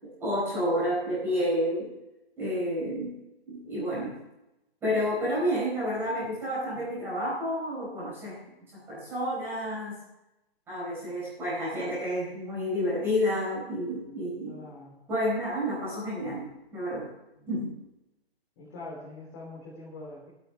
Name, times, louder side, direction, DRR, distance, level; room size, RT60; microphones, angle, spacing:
voice 1, 0.0-1.9 2.4-3.1 3.5-4.2 4.8-8.4 8.9-10.0 10.7-14.6 15.1-17.1 17.5-17.8, equal, 5° right, -9 dB, 4.4 m, -30 dB
voice 2, 14.5-15.0 17.4-17.5 18.6-20.3, left 2 dB, 20° left, -5 dB, 3.2 m, -44 dB
25.0 x 9.0 x 3.4 m, 0.91 s
hypercardioid pair, 180°, 32 cm